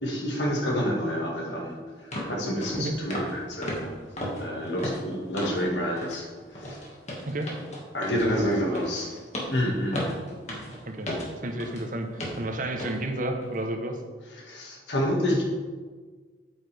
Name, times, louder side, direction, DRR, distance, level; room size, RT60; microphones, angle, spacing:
voice 1, 0.0-3.9 4.4-6.8 7.9-9.1 9.5-10.2 14.3-15.4, equal, 75° left, -1 dB, 1.8 m, -29 dB
sound 1, 1.5-1.6 2.1-2.3 2.6-2.8 3.1-3.4 3.6-5.7 6.0-6.2 6.5-11.8 12.2-12.4 12.8-13.0 13.4-13.6, equal, 40° left, 1.9 m, -35 dB
voice 2, 8.1-8.8 10.5-11.1 11.4-14.0, right 1 dB, 45° right, 4 dB, 0.9 m, -32 dB
8.5 x 8.1 x 3.4 m, 1.4 s
head